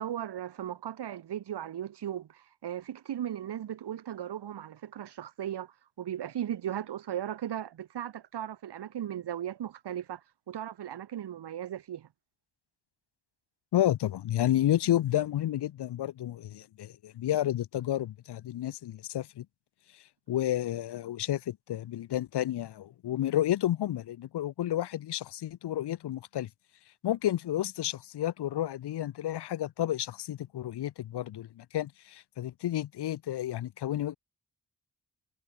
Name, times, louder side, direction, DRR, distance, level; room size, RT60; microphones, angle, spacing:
voice 1, 0.0-10.2 10.5-12.1, right 10 dB, 85° right, 3.1 m, -37 dB
voice 2, 13.7-19.5 20.3-26.5 27.0-34.2, left 12 dB, 80° left, 1.0 m, -31 dB
cardioid pair, 75°, 40 cm